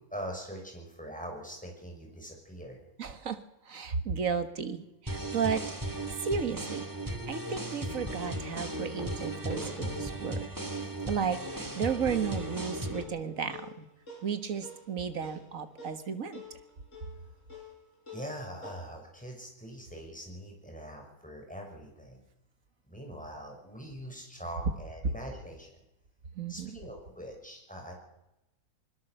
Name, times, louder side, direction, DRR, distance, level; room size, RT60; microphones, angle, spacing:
voice 1, 0.1-2.8 18.1-22.2 22.9-25.8 26.5-27.9, equal, 5° left, 1 dB, 6.1 m, -43 dB
voice 2, 3.0-5.6 5.9-10.5 11.1-13.9 14.2-16.4 26.4-26.8, right 6 dB, 65° right, 10 dB, 1.9 m, -34 dB
sound 1, 5.1-13.0, right 1 dB, 15° right, 2.3 m, -36 dB
sound 2, 9.0-13.4 14.2-14.3 14.5-14.7 15.2-15.3, equal, 30° right, 5.3 m, -49 dB
sound 3, 11.8-18.8, left 3 dB, 55° left, 7.7 m, -49 dB
21.5 x 20.0 x 6.7 m, 0.91 s
omnidirectional pair, 1.5 m